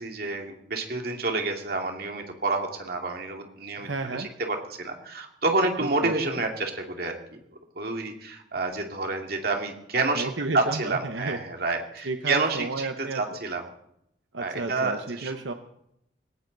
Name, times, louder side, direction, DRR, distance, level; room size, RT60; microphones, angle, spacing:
voice 1, 0.0-7.2 7.8-10.3 10.5-12.9 13.1-13.7 14.4-15.3, right 3 dB, 55° right, 3 dB, 2.5 m, -29 dB
voice 2, 3.8-4.3 6.0-6.1 10.1-11.4 12.0-13.2 14.3-15.5, right 3 dB, 85° right, 7 dB, 1.0 m, -32 dB
20.0 x 17.5 x 4.0 m, 0.76 s
head